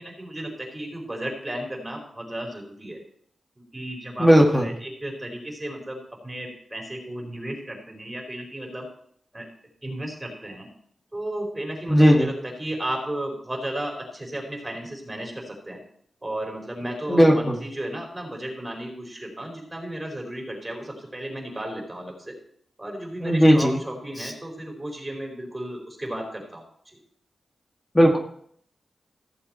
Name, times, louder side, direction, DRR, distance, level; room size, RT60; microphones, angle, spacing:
voice 1, 0.0-3.0 3.7-8.9 9.3-9.5 9.8-10.7 11.1-15.8 16.2-22.3 22.8-27.0, right 1 dB, 15° right, 0 dB, 4.5 m, -34 dB
voice 2, 4.2-4.7 11.9-12.3 17.1-17.6 23.2-23.8 27.9-28.2, equal, 15° left, 1 dB, 1.8 m, -16 dB
15.0 x 7.1 x 4.4 m, 0.64 s
cardioid pair, 75°, 0 cm